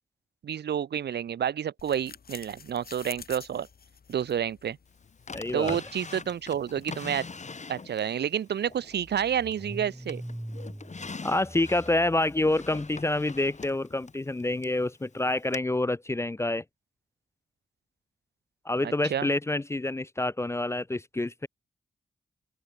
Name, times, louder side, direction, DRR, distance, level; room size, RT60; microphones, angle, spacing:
voice 1, 0.4-3.7 4.1-4.8 5.5-7.3 7.7-10.2 18.8-19.3, right 9 dB, 75° right, 0.7 m, -29 dB
sound 1, 1.8-7.3, left 6 dB, 60° left, 2.8 m, -50 dB
Drawer open or close, 5.3-8.2 8.7-9.7 10.1-14.8 15.5-15.6, left 4 dB, 40° left, 4.4 m, -42 dB
voice 2, 5.3-5.8 11.2-16.6 18.7-21.5, left 2 dB, 15° left, 0.4 m, -27 dB
Car / Engine starting, 7.7-7.8 8.1-13.3, right 1 dB, 5° right, 0.9 m, -43 dB
open air
cardioid pair, 75°, 18 cm